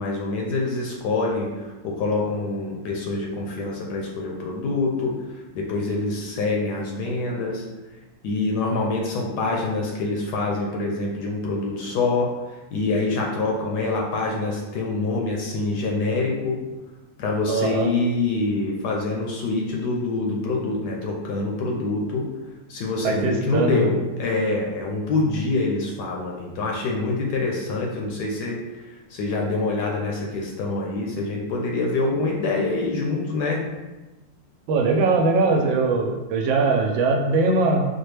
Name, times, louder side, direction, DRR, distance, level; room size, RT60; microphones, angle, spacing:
voice 1, 0.0-5.2 5.5-7.7 8.2-12.4 12.7-16.6 17.2-22.3 22.7-33.7, left 3 dB, 75° left, -1 dB, 1.0 m, -25 dB
voice 2, 17.5-17.9 23.0-23.9 34.7-37.8, right 3 dB, 85° right, 2 dB, 1.3 m, -21 dB
4.2 x 2.2 x 3.2 m, 1.1 s
omnidirectional pair, 2.1 m